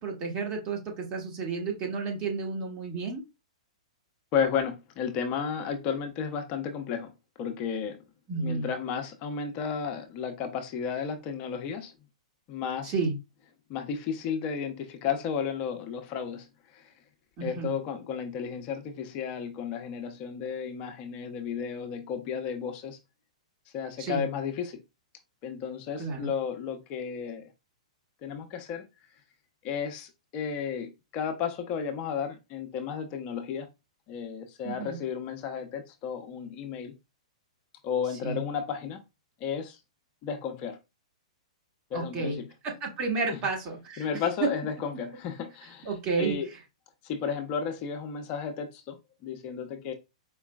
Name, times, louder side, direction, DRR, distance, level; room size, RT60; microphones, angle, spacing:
voice 1, 0.0-3.2 8.3-8.7 12.8-13.1 17.4-17.7 24.0-24.2 26.0-26.3 34.6-35.0 38.2-38.4 41.9-42.4 42.6-44.1 44.4-44.5 45.8-46.4, right 4 dB, 35° right, 1.6 m, -31 dB
voice 2, 4.3-7.1 7.4-8.0 8.4-11.9 12.5-12.9 13.7-16.5 16.7-16.8 17.4-23.0 23.7-24.8 25.4-27.5 28.2-28.8 29.6-33.7 34.1-36.9 37.8-39.0 39.4-39.8 40.2-40.8 41.9-42.5 43.3-43.4 44.0-45.9 46.2-46.5 47.0-49.0 49.2-49.9, left 7 dB, 35° left, 0.7 m, -33 dB
4.7 x 3.0 x 2.3 m
hypercardioid pair, 120°, 4 cm